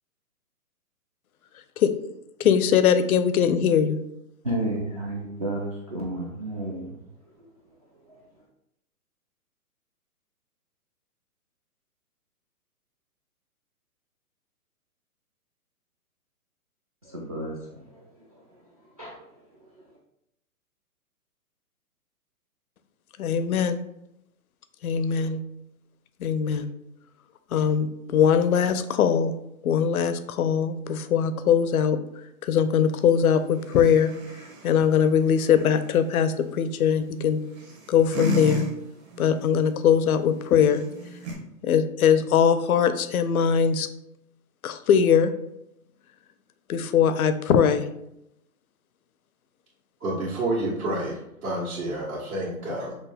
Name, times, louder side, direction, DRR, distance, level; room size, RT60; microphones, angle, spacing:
voice 1, 2.4-4.0 23.2-23.8 24.8-25.4 26.2-26.7 27.5-29.3 29.6-32.0 32.4-34.1 34.6-37.4 37.9-38.6 39.2-40.8 41.6-43.9 44.6-45.3 46.7-47.9, left 7 dB, 70° left, 11 dB, 0.6 m, -21 dB
voice 2, 4.4-7.0 17.0-18.4 19.0-19.4, right 1 dB, 30° right, -5 dB, 0.3 m, -32 dB
sound 1, 32.9-41.3, right 1 dB, 45° right, 1.1 m, -37 dB
voice 3, 50.0-53.0, right 1 dB, 70° right, -8 dB, 1.6 m, -29 dB
6.0 x 2.4 x 3.4 m, 0.83 s
hypercardioid pair, 140°, 45 cm